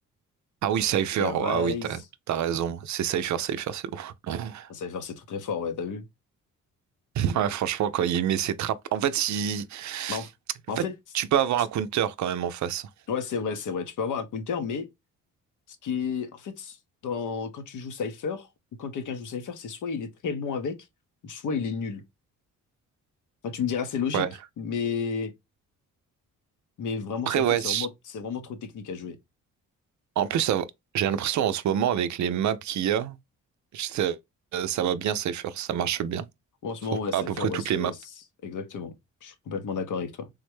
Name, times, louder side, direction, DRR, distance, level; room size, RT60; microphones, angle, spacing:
voice 1, 0.6-2.0 2.3-4.7 7.2-10.2 10.8-10.9 11.1-12.9 24.1-24.3 27.3-27.9 30.2-30.7 30.9-33.2 33.7-34.2 34.5-36.3 37.1-37.9, right 9 dB, 60° right, 0.5 m, -27 dB
voice 2, 1.2-2.0 4.7-6.1 10.1-10.3 10.7-10.9 13.1-14.9 15.8-16.8 17.0-18.5 18.8-20.7 21.2-22.0 23.4-24.3 24.6-25.3 26.8-29.2 36.6-38.0 38.4-38.9 39.2-40.3, left 6 dB, 65° left, 0.8 m, -32 dB
3.5 x 2.1 x 3.0 m
cardioid pair, 70°, 32 cm